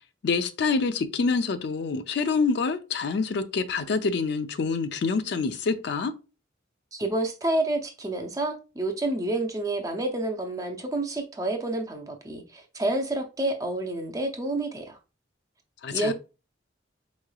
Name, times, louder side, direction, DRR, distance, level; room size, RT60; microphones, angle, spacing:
voice 1, 0.2-6.1 15.8-16.1, left 4 dB, 60° left, 0.4 m, -26 dB
voice 2, 6.9-15.0 15.9-16.1, right 2 dB, 20° right, 0.6 m, -29 dB
4.6 x 3.1 x 2.2 m
head